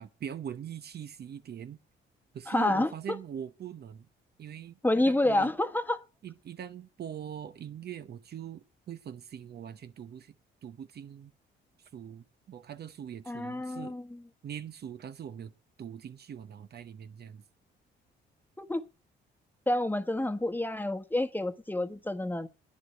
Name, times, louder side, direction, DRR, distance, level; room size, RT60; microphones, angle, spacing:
voice 1, 0.0-1.8 2.3-4.1 4.4-4.8 5.0-5.5 6.2-10.4 10.6-11.3 11.8-14.0 14.4-15.5 15.8-17.4, right 9 dB, 55° right, 0.9 m, -42 dB
voice 2, 2.5-3.2 4.8-6.0 13.3-14.2 18.6-18.8 19.7-22.5, left 1 dB, 10° left, 1.2 m, -28 dB
11.0 x 9.8 x 7.5 m
cardioid pair, 90°, 20 cm